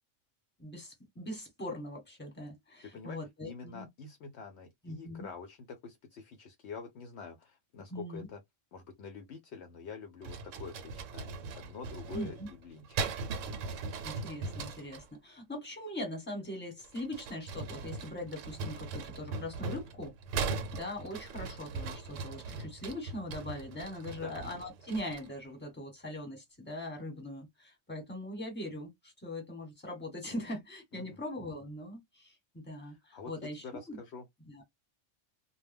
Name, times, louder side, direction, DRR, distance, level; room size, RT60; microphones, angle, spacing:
voice 1, 0.6-3.9 4.8-5.3 7.9-8.3 12.1-12.5 14.0-20.1 20.4-34.0 34.5-34.6, left 1 dB, 10° left, 1.0 m, -41 dB
voice 2, 2.8-3.2 3.4-8.4 8.7-13.0 24.1-24.4 30.9-31.2 32.8-34.3, left 5 dB, 65° left, 0.8 m, -46 dB
sound 1, 10.2-15.1 16.8-25.4, right 4 dB, 80° right, 0.9 m, -39 dB
2.1 x 2.1 x 3.3 m
omnidirectional pair, 1.3 m